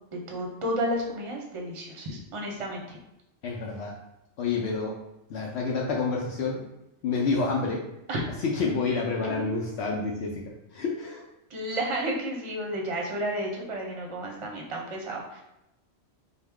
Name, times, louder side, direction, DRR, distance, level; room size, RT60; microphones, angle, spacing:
voice 1, 0.1-3.0 8.1-8.2 9.1-9.5 11.5-15.4, right 1 dB, 35° right, 0 dB, 0.6 m, -32 dB
voice 2, 3.4-3.9 4.4-5.0 5.3-6.7 7.0-7.8 8.4-10.4 10.7-11.2, left 4 dB, 70° left, -1 dB, 0.8 m, -28 dB
4.4 x 2.1 x 3.5 m, 0.89 s
omnidirectional pair, 1.2 m